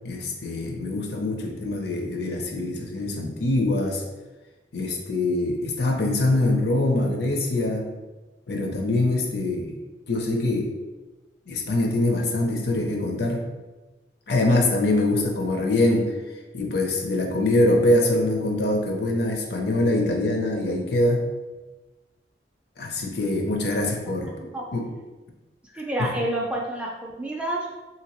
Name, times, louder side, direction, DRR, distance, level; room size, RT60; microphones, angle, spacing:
voice 1, 0.0-4.0 4.7-7.8 8.5-9.7 10.1-10.7 11.5-13.4 14.3-16.1 16.5-21.2 22.8-24.3 24.7-24.9, left 2 dB, 65° left, 2 dB, 0.5 m, -23 dB
voice 2, 24.2-24.6 25.7-27.7, right 1 dB, 5° right, -2 dB, 0.3 m, -29 dB
2.8 x 2.8 x 2.9 m, 1.2 s
head